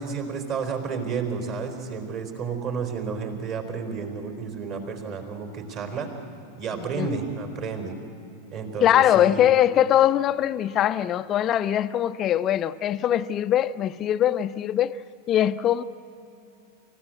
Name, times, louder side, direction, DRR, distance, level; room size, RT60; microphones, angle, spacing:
voice 1, 0.0-6.1 6.6-8.0 8.5-9.5, right 5 dB, 40° right, 4.1 m, -31 dB
voice 2, 8.8-15.0 15.3-15.8, left 11 dB, 30° left, 0.5 m, -22 dB
29.5 x 15.5 x 8.1 m
figure-of-eight pair, 90°, 0 cm